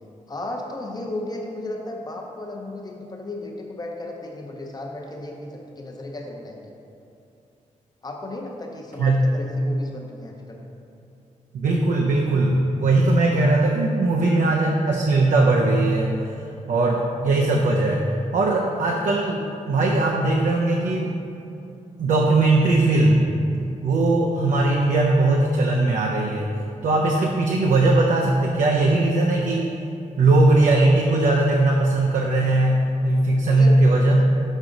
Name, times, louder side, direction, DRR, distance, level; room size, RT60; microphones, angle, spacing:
voice 1, 0.3-6.7 8.0-10.6 32.5-32.6 33.4-34.4, left 2 dB, 30° left, 1 dB, 0.7 m, -34 dB
voice 2, 11.5-16.1 16.7-18.1 18.3-21.2 22.0-23.2 23.8-26.6 26.8-29.7 30.2-34.3, right 2 dB, 70° right, 0 dB, 0.5 m, -19 dB
6.2 x 4.9 x 3.9 m, 2.7 s
wide cardioid pair, 145°, 13 cm